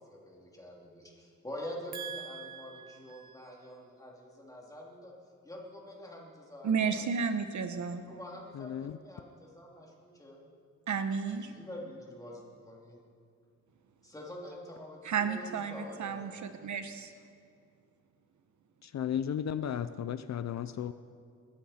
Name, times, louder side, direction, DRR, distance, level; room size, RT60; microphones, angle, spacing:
voice 1, 0.0-5.1 5.4-7.1 8.1-10.5 11.3-13.0 14.0-16.6, left 1 dB, 10° left, -3 dB, 2.9 m, -46 dB
voice 2, 1.9-3.3 6.6-8.0 10.9-11.5 15.0-17.1, right 6 dB, 70° right, 8 dB, 1.0 m, -33 dB
voice 3, 8.5-9.0 18.8-20.9, left 9 dB, 60° left, 12 dB, 0.5 m, -34 dB
21.0 x 13.5 x 4.3 m, 2.3 s
wide cardioid pair, 135°, 31 cm